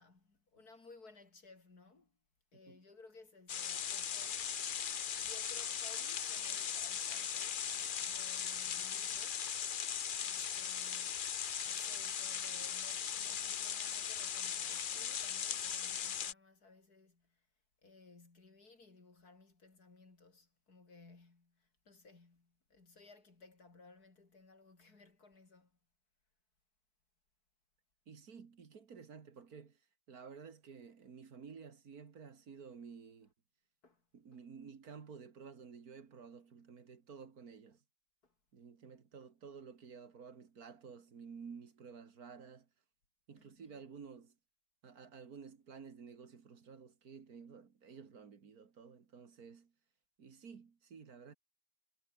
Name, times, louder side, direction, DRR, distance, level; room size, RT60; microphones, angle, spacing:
voice 1, 0.0-2.2 2.5-4.6 5.2-9.5 10.2-17.5 17.8-25.7 33.8-34.1 38.2-38.3 43.4-43.8, left 3 dB, 75° left, 4.3 m, -60 dB
sound 1, 3.5-16.3, left 8 dB, 50° left, 0.6 m, -38 dB
voice 2, 28.1-29.8 30.1-33.3 34.1-37.8 38.5-42.7 43.3-44.4 44.8-49.7 50.2-51.3, right 6 dB, 70° right, 2.3 m, -53 dB
omnidirectional pair, 1.7 m